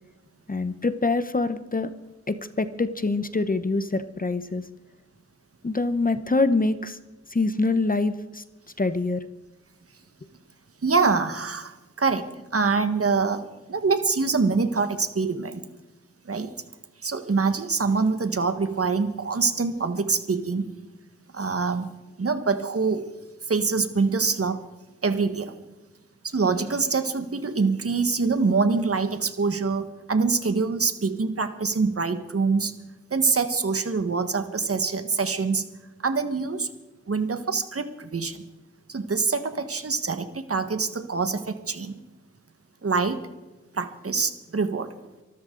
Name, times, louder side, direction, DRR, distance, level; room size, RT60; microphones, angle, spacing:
voice 1, 0.5-1.9 2.3-4.7 5.6-7.0 7.3-8.4 8.8-9.3, left 3 dB, 30° left, 12 dB, 0.9 m, -25 dB
voice 2, 10.8-13.4 13.7-15.6 16.2-16.5 17.0-20.6 21.3-21.9 22.2-23.0 23.5-24.6 25.0-25.5 26.2-32.7 33.1-35.7 36.0-36.7 37.1-38.4 38.9-42.0 42.8-43.2 43.7-44.9, right 4 dB, 50° right, 9 dB, 1.5 m, -25 dB
24.0 x 13.5 x 3.9 m, 1.1 s
wide cardioid pair, 95°, 29 cm